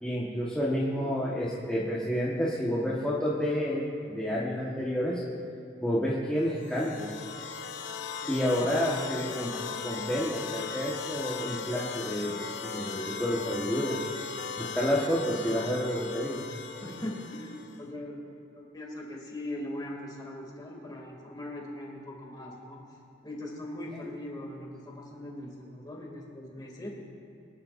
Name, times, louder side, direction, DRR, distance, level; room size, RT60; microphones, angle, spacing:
voice 1, 0.0-5.2 5.8-7.1 8.3-9.5 9.8-14.0 14.6-16.5, equal, 5° left, -8 dB, 1.4 m, -29 dB
sound 1, 6.6-17.8, left 6 dB, 65° left, 0.7 m, -38 dB
voice 2, 8.2-8.7 16.8-22.8 23.2-26.9, left 1 dB, 20° left, -2 dB, 2.6 m, -40 dB
24.5 x 11.5 x 2.6 m, 2.8 s
head